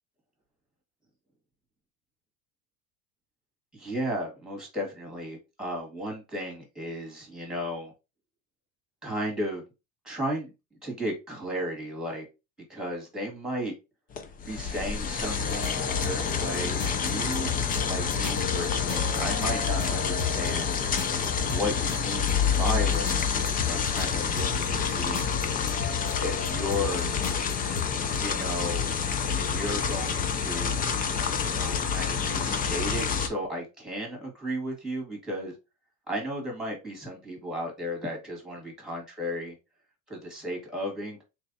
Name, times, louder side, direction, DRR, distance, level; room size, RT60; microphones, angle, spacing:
voice 1, 3.7-7.9 9.0-9.6 10.0-10.5 10.8-12.2 12.7-13.7 14.5-17.6 17.8-20.7 21.5-25.2 26.2-27.1 28.2-29.0 29.4-30.9 31.4-35.5 36.1-39.5 40.1-41.2, equal, ahead, 1.9 m, -34 dB
sound 1, 14.1-33.3, left 6 dB, 25° left, 0.4 m, -28 dB
sound 2, 15.5-28.2, left 5 dB, 50° left, 1.6 m, -37 dB
3.3 x 3.2 x 2.7 m
supercardioid pair, 115°, 38 cm